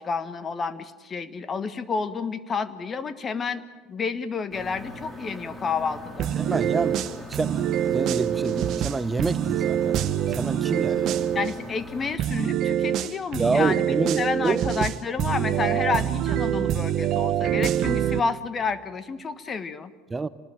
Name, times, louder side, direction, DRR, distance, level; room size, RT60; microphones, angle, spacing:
voice 1, 0.0-3.6 3.9-6.3 11.3-19.9, left 5 dB, 30° left, 13 dB, 1.6 m, -30 dB
sound 1, 4.5-12.2, left 1 dB, 15° left, 4.4 m, -41 dB
sound 2, 6.2-11.5 12.2-18.2, right 10 dB, 55° right, 0.9 m, -25 dB
voice 2, 6.4-11.3 13.3-14.6 20.1-20.3, right 3 dB, 20° right, 13 dB, 0.9 m, -28 dB
27.5 x 19.5 x 9.0 m, 1.3 s
hypercardioid pair, 80°, 0 cm